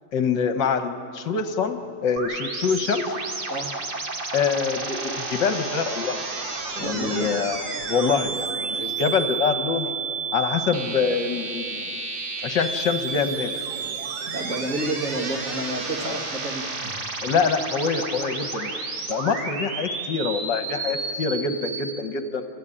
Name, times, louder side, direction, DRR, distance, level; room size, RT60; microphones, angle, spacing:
voice 1, 0.1-3.1 4.3-6.2 6.7-7.6 7.9-10.0 10.3-11.9 12.4-13.5 16.0-16.2 17.2-18.7 19.1-22.5, left 5 dB, 65° left, 7 dB, 1.8 m, -25 dB
sound 1, 2.2-21.9, right 4 dB, 85° right, 3.0 m, -31 dB
voice 2, 6.8-7.3 14.3-17.0, right 2 dB, 45° right, 2 dB, 2.2 m, -30 dB
30.0 x 14.5 x 10.0 m, 2.5 s
omnidirectional pair, 2.1 m